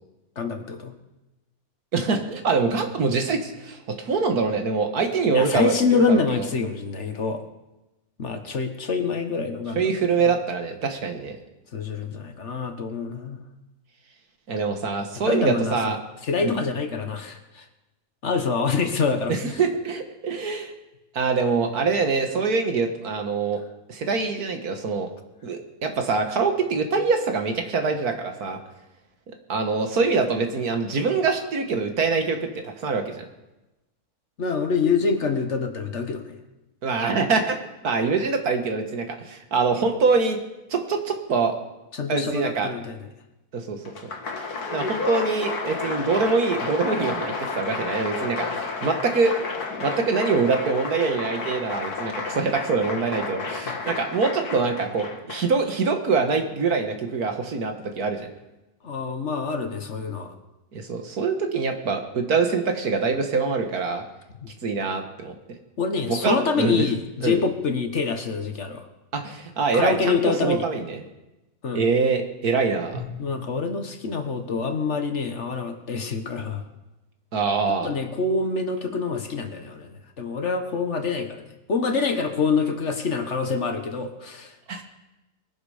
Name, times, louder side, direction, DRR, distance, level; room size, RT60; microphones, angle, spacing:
voice 1, 0.4-0.9 5.3-7.4 8.2-9.8 10.2-10.3 11.7-13.4 15.3-17.6 18.2-19.3 34.4-36.3 41.9-43.0 53.7-53.8 58.8-60.3 64.4-64.5 65.8-68.9 69.7-70.6 71.6-71.8 73.2-76.6 77.8-84.5, left 4 dB, 50° left, 6 dB, 1.5 m, -26 dB
voice 2, 1.9-6.5 9.8-11.4 14.5-16.0 16.4-16.6 19.3-20.7 21.1-23.6 23.9-25.1 25.4-28.6 29.5-33.3 36.8-37.6 37.8-40.4 40.7-41.5 42.1-42.7 43.5-44.1 44.7-49.3 49.8-58.3 60.7-64.0 64.6-65.3 66.0-66.8 67.2-67.4 69.1-71.0 71.7-73.0 77.3-77.9 84.7-84.8, right 4 dB, 75° right, 5 dB, 2.0 m, -24 dB
Applause, 43.8-55.7, left 4 dB, 80° left, 2.1 m, -31 dB
Drum, 72.9-75.9, left 4 dB, 45° right, 2.5 m, -43 dB
21.0 x 12.0 x 5.0 m, 1.0 s
omnidirectional pair, 1.6 m